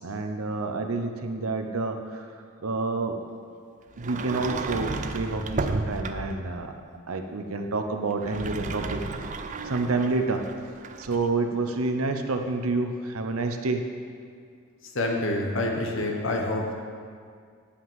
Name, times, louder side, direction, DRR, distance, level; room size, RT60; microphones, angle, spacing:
voice 1, 0.0-2.3 2.6-3.2 4.0-6.7 7.1-9.0 9.6-10.4 11.0-13.8, right 3 dB, 80° right, 5 dB, 0.8 m, -28 dB
Sliding door, 4.0-6.5 8.1-11.3, right 3 dB, 35° right, 0.4 m, -33 dB
voice 2, 14.9-16.7, left 1 dB, 60° left, 1 dB, 1.3 m, -27 dB
9.9 x 5.9 x 7.4 m, 2.2 s
head